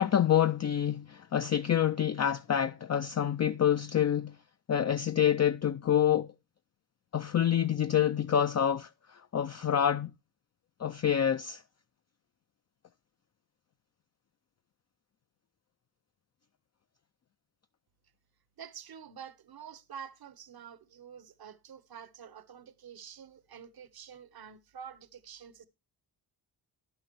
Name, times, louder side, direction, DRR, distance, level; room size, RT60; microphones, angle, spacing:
voice 1, 0.0-4.4 4.7-6.3 7.1-10.1 10.8-11.6, left 9 dB, 35° left, 0.5 m, -27 dB
voice 2, 18.6-25.7, right 8 dB, 50° right, 1.0 m, -48 dB
11.0 x 10.5 x 3.0 m
cardioid pair, 55°, 49 cm